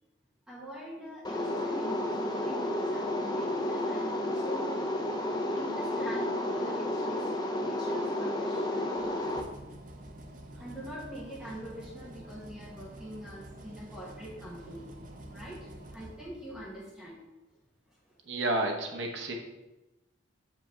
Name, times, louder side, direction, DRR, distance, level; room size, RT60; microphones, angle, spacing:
voice 1, 0.5-4.8 5.5-7.2 7.6-8.9 10.6-14.9 15.3-17.2 19.2-19.3, equal, 5° right, -6 dB, 1.2 m, -44 dB
sound 1, 1.2-9.4, left 1 dB, 20° left, 0.5 m, -31 dB
sound 2, 9.0-16.9, right 1 dB, 45° right, 0.7 m, -48 dB
voice 2, 18.3-19.3, right 2 dB, 65° right, 2 dB, 1.0 m, -30 dB
6.9 x 5.0 x 3.6 m, 1.0 s
head